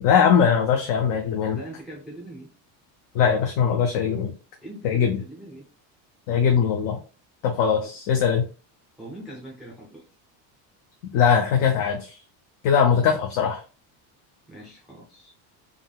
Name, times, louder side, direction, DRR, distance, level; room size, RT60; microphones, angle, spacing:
voice 1, 0.0-1.6 3.1-4.3 4.8-5.2 6.3-7.0 7.4-8.5 11.1-12.2 12.6-13.6, left 7 dB, 50° left, 2 dB, 0.5 m, -21 dB
voice 2, 1.5-2.5 4.6-5.7 7.8-7.9 9.0-10.0 14.5-15.3, right 1 dB, ahead, -5 dB, 0.5 m, -41 dB
3.6 x 2.2 x 2.2 m, 0.36 s
cardioid pair, 170°, 45 cm